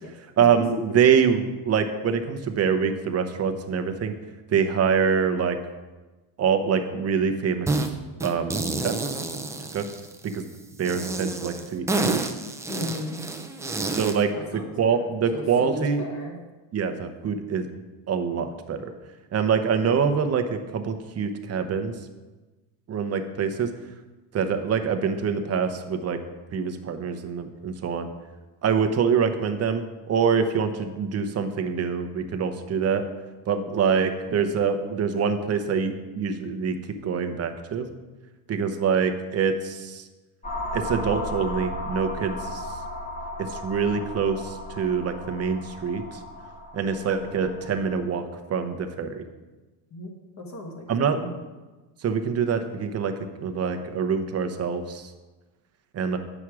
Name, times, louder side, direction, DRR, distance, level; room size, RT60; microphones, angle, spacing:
voice 1, 0.4-4.1 4.5-5.6 6.4-7.8 8.2-9.2 9.7-9.9 10.2-10.4 10.8-12.2 13.9-16.0 16.7-17.7 18.1-18.9 19.3-21.9 22.9-23.7 24.3-26.2 26.5-28.1 28.6-33.0 33.5-36.8 37.0-37.9 38.5-40.0 40.7-42.6 43.4-46.2 46.7-49.2 50.9-51.2 52.0-53.1 53.4-55.1 55.9-56.2, right 6 dB, 30° right, 7 dB, 0.8 m, -25 dB
sound 1, 7.7-7.9 8.2-10.3 10.8-14.2, right 2 dB, 5° right, 0.5 m, -29 dB
voice 2, 12.7-13.2 14.3-16.4 49.9-50.1 50.4-51.3, left 1 dB, 35° left, 1 dB, 1.9 m, -36 dB
sound 2, 40.4-48.0, left 1 dB, 15° left, 1.6 m, -35 dB
8.9 x 6.1 x 4.8 m, 1.2 s
cardioid pair, 125°, 47 cm